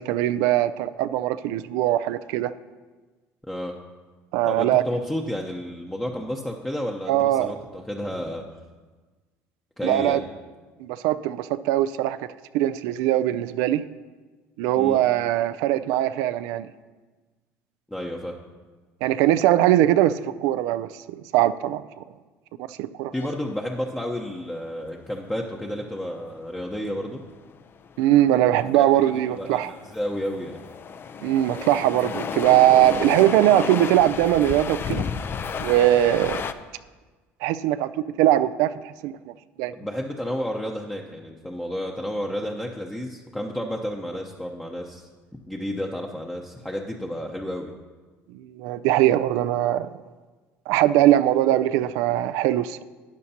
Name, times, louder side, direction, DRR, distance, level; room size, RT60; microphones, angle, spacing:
voice 1, 0.0-2.5 4.3-4.8 7.1-7.5 9.8-10.2 10.8-12.3 12.5-13.8 14.6-16.7 19.0-20.9 21.3-21.8 22.7-23.1 28.0-29.7 31.2-35.0 35.6-36.4 37.4-37.9 38.2-39.7 48.3-49.9 50.7-52.8, right 13 dB, 80° right, 12 dB, 0.4 m, -21 dB
voice 2, 4.4-8.5 9.8-10.2 14.8-15.0 17.9-18.3 23.1-27.2 28.7-30.6 39.7-45.1 45.5-47.7, equal, 5° left, -1 dB, 0.8 m, -31 dB
sound 1, 23.1-36.5, left 6 dB, 40° left, 0.5 m, -33 dB
12.0 x 9.3 x 2.8 m, 1.3 s
supercardioid pair, 90°, 6 cm